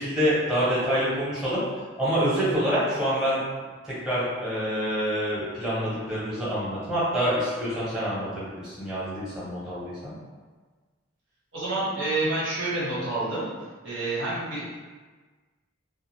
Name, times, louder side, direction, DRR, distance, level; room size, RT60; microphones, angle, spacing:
voice 1, 0.0-1.6 2.0-3.4 3.8-10.1, equal, 5° right, -9 dB, 0.9 m, -26 dB
voice 2, 11.5-13.5 13.8-14.7, right 2 dB, 75° right, -10 dB, 1.2 m, -28 dB
2.4 x 2.4 x 3.0 m, 1.4 s
head